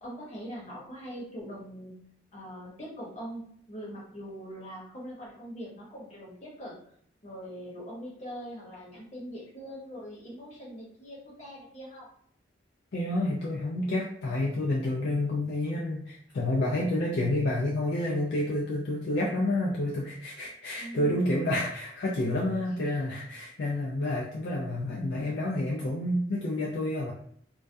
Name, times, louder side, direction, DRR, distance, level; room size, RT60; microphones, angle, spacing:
voice 1, 0.0-1.9 2.3-3.4 3.7-6.8 7.2-12.1 20.8-21.2, equal, 35° left, -5 dB, 0.8 m, -42 dB
voice 2, 12.9-27.1, left 1 dB, 60° left, -3 dB, 0.4 m, -29 dB
2.2 x 2.2 x 2.5 m, 0.64 s
head